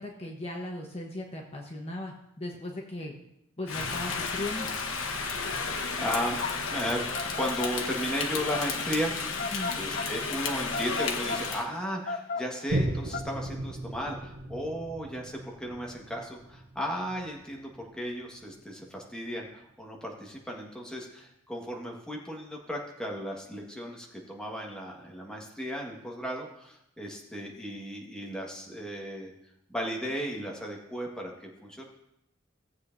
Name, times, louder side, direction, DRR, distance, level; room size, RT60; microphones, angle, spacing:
voice 1, 0.0-3.1 3.6-4.7 9.5-9.7, left 1 dB, 30° left, 0 dB, 1.1 m, -37 dB
Rain, 3.7-11.7, left 4 dB, 90° left, 1.1 m, -32 dB
voice 2, 5.6-6.4 6.7-7.0 7.3-9.1 9.8-29.3 29.7-31.8, equal, 5° left, -1 dB, 1.6 m, -35 dB
sound 1, 6.1-13.2, left 4 dB, 50° left, 0.6 m, -36 dB
Boom, 12.7-19.6 20.1-20.2, right 1 dB, 85° right, 1.1 m, -37 dB
18.0 x 8.0 x 2.7 m, 0.79 s
head